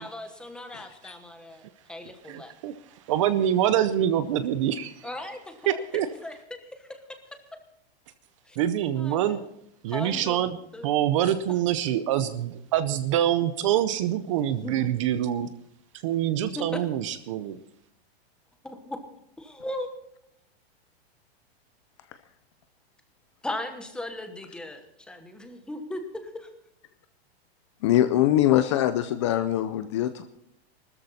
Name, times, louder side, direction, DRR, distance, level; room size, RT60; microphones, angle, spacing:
voice 1, 0.0-2.5 5.0-7.2 8.5-8.6 9.0-9.5 9.9-11.0 14.6-14.9 16.7-16.8 18.6-19.0 19.4-19.9 23.4-26.5, left 1 dB, 5° left, 6 dB, 1.1 m, -38 dB
voice 2, 0.7-1.1 27.8-30.2, left 12 dB, 30° left, 11 dB, 0.5 m, -23 dB
voice 3, 2.3-5.1 5.7-6.1 8.6-9.4 9.8-10.6 10.8-15.5 16.0-17.6, right 11 dB, 30° right, 12 dB, 0.6 m, -25 dB
19.5 x 13.5 x 4.1 m, 0.76 s
supercardioid pair, 170°, 32 cm